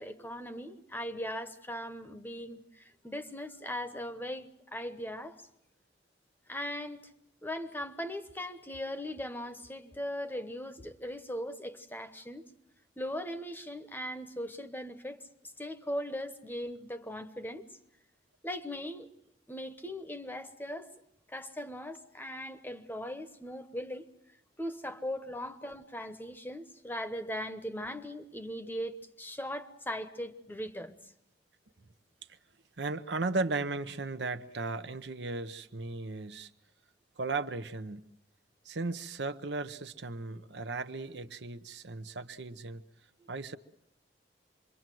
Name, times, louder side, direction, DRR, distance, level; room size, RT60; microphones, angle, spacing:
voice 1, 0.0-5.4 6.5-7.0 7.4-12.4 13.0-15.2 15.6-17.6 18.4-19.1 19.5-20.9 21.3-24.1 24.6-30.9 43.2-43.3, equal, 10° left, 1.0 m, -39 dB
voice 2, 32.8-36.5 37.2-38.0 38.6-42.8 43.3-43.6, right 3 dB, 70° right, 0.9 m, -36 dB
26.5 x 22.5 x 7.7 m
head